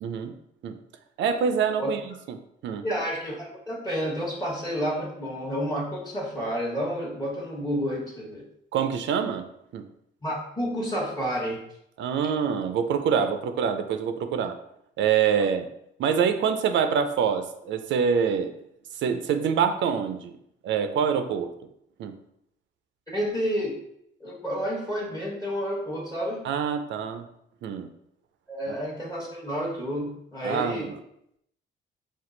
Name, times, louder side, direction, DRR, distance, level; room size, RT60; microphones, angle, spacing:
voice 1, 0.0-0.3 0.6-0.8 1.2-2.0 2.3-2.4 2.6-2.9 8.7-9.4 9.7-9.8 12.0-14.6 15.0-15.7 16.0-18.5 19.0-20.3 20.6-21.5 22.0-22.1 26.4-27.3 27.6-27.9 28.7-28.8 30.4-31.0, right 7 dB, 70° right, 8 dB, 0.5 m, -25 dB
voice 2, 2.8-8.4 10.2-11.6 23.1-23.8 24.2-26.4 28.5-30.9, equal, 20° left, -3 dB, 1.1 m, -30 dB
4.4 x 2.4 x 3.8 m, 0.75 s
cardioid pair, 90°, 20 cm